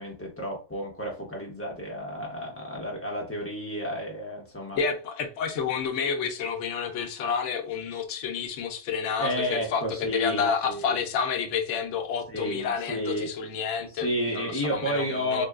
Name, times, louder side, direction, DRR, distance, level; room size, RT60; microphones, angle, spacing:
voice 1, 0.0-4.8 9.2-11.0 12.3-13.3 13.9-15.5, equal, 10° left, 0.8 m, -31 dB
voice 2, 4.8-15.5, left 6 dB, 70° left, 0.9 m, -29 dB
3.6 x 2.2 x 2.3 m
omnidirectional pair, 1.4 m